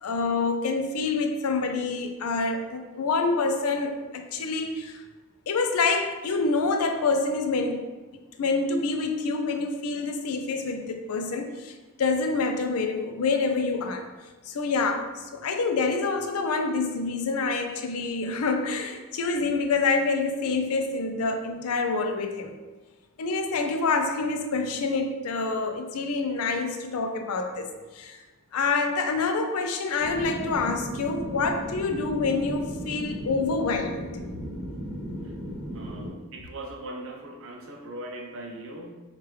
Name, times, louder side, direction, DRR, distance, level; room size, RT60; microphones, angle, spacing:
voice 1, 0.0-5.0 5.5-7.9 8.4-14.1 14.5-22.6 23.2-28.2 28.5-34.1, left 4 dB, 80° left, 6 dB, 0.4 m, -27 dB
sound 1, 30.0-36.1, equal, 5° left, 1.5 m, -36 dB
voice 2, 35.7-38.9, right 1 dB, 65° right, 3 dB, 0.6 m, -40 dB
4.6 x 2.4 x 3.1 m, 1.2 s
head